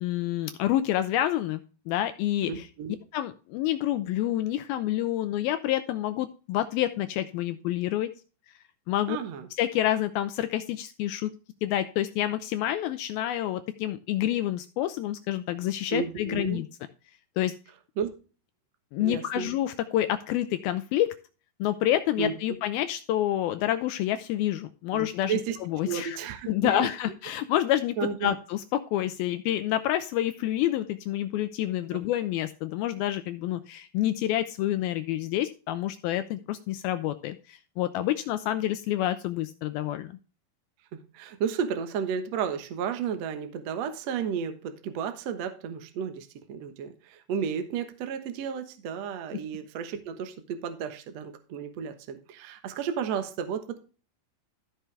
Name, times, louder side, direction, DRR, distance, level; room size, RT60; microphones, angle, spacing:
voice 1, 0.0-2.7 3.1-8.1 8.9-9.2 9.6-11.3 11.6-16.7 17.4-17.5 18.9-21.1 21.6-26.2 26.5-28.0 28.2-40.2, left 13 dB, 80° left, 10 dB, 2.2 m, -28 dB
voice 2, 2.5-3.0 9.1-9.5 15.9-16.6 18.0-18.1 19.0-19.5 22.2-22.3 24.9-25.0 25.3-25.6 25.8-26.9 28.0-28.3 31.9-32.0 40.9-53.8, right 7 dB, 70° right, 8 dB, 1.6 m, -32 dB
14.0 x 6.0 x 3.3 m, 0.35 s
omnidirectional pair, 4.8 m